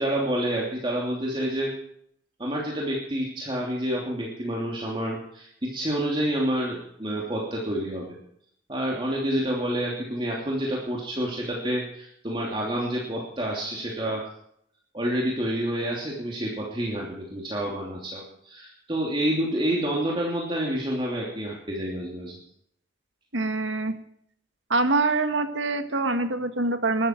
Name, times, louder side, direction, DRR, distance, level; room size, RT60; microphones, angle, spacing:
voice 1, 0.0-1.7 2.4-8.2 8.7-14.3 14.9-22.4, right 1 dB, 25° right, -3 dB, 3.0 m, -28 dB
voice 2, 23.3-24.0 24.7-27.1, right 3 dB, 80° right, 8 dB, 1.8 m, -25 dB
22.0 x 13.0 x 4.6 m, 0.70 s
head